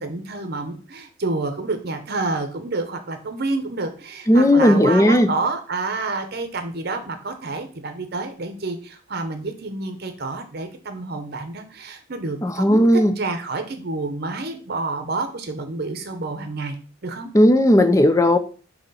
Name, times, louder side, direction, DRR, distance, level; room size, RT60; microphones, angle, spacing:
voice 1, 0.0-12.9 13.2-16.8 17.0-17.3, right 3 dB, 50° right, 0.8 m, -29 dB
voice 2, 4.3-5.3 12.4-13.1 17.3-18.4, left 1 dB, 15° left, 0.5 m, -15 dB
6.4 x 3.0 x 5.4 m
head